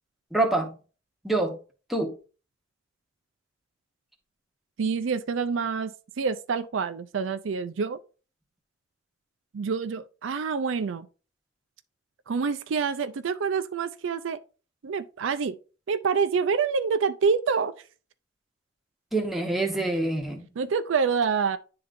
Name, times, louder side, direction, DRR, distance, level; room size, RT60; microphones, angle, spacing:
voice 1, 0.3-0.7 1.2-1.6 1.9-2.1 19.1-20.5, right 2 dB, ahead, 1.0 m, -26 dB
voice 2, 4.8-8.0 9.5-11.1 12.3-14.4 14.8-15.6 15.9-17.7 20.6-21.6, right 5 dB, 80° right, 0.4 m, -27 dB
10.5 x 3.8 x 2.5 m
head